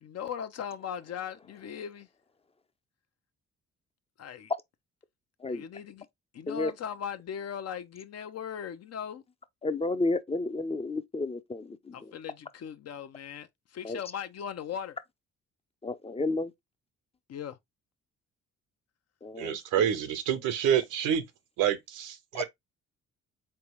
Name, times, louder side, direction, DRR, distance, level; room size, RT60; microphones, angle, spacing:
voice 1, 0.0-2.1 4.2-4.5 5.5-6.1 6.3-9.2 11.9-15.0 17.3-17.6, left 8 dB, 55° left, 0.7 m, -38 dB
voice 2, 9.6-11.9 13.8-14.0 15.8-16.5 19.2-19.6 22.3-22.4, left 2 dB, 20° left, 0.6 m, -31 dB
voice 3, 19.4-21.2 21.6-22.4, right 9 dB, 90° right, 0.9 m, -27 dB
4.0 x 3.4 x 3.0 m
cardioid pair, 90°, 30 cm